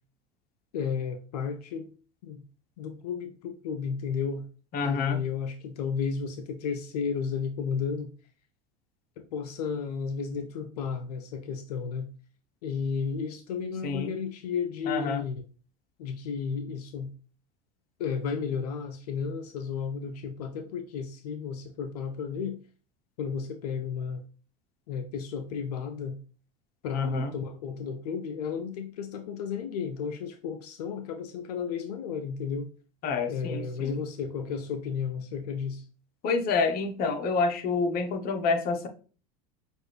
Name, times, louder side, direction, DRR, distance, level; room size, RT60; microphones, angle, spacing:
voice 1, 0.7-1.9 2.2-2.4 2.8-4.5 4.8-8.1 9.2-12.1 12.6-15.4 16.0-17.1 18.0-22.6 23.2-24.2 24.9-26.2 26.8-32.7 33.3-35.9, left 6 dB, 85° left, 6 dB, 0.5 m, -33 dB
voice 2, 4.7-5.2 13.8-14.1 14.9-15.2 26.9-27.3 33.0-33.9 36.2-38.9, left 4 dB, 50° left, 5 dB, 1.0 m, -28 dB
6.0 x 2.5 x 3.2 m, 0.38 s
hypercardioid pair, 95°, 20 cm